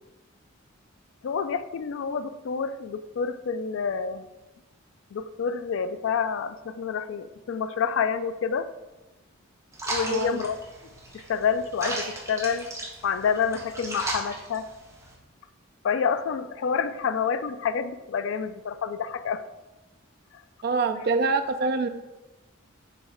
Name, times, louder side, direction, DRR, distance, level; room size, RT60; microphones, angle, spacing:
voice 1, 1.2-4.2 5.1-8.7 9.9-10.6 11.1-12.7 13.0-14.7 15.8-19.4 20.3-20.4, left 6 dB, 65° left, 12 dB, 0.3 m, -28 dB
sound 1, 9.7-15.1, right 1 dB, 15° right, 1.1 m, -35 dB
voice 2, 10.1-10.4 20.6-21.9, right 4 dB, 50° right, 8 dB, 0.4 m, -25 dB
6.7 x 3.1 x 4.9 m, 1.1 s
head